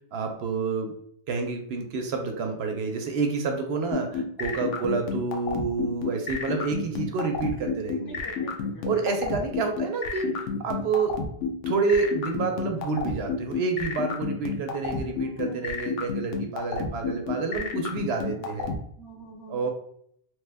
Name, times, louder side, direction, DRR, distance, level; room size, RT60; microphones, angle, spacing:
voice 1, 0.1-0.9 1.3-8.2 8.8-10.3 10.6-11.1 11.7-18.7 19.5-19.7, right 4 dB, 65° right, 4 dB, 0.8 m, -28 dB
sound 1, 3.9-18.8, left 6 dB, 90° left, 0.9 m, -29 dB
voice 2, 4.8-5.1 8.1-8.8 9.4-9.5 15.1-15.7 18.4-18.5 19.0-19.7, equal, 25° left, -1 dB, 0.5 m, -45 dB
3.0 x 2.2 x 3.3 m, 0.69 s
omnidirectional pair, 1.2 m